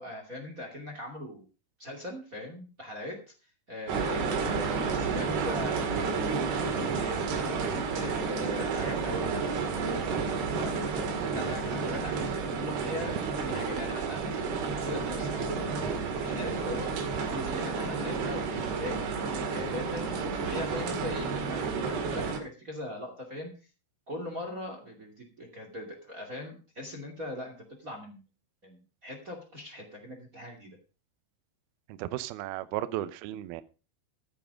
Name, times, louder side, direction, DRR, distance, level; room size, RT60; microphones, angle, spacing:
voice 1, 0.0-1.5 1.8-7.2 7.9-10.1 10.5-10.7 11.3-23.5 24.1-28.2 28.6-30.8, left 1 dB, 30° right, 2 dB, 1.8 m, -41 dB
sound 1, 3.9-22.4, right 5 dB, 65° right, 3.8 m, -31 dB
voice 2, 32.0-33.6, right 14 dB, 90° right, 14 dB, 2.1 m, -34 dB
14.0 x 8.6 x 5.1 m, 0.34 s
omnidirectional pair, 5.4 m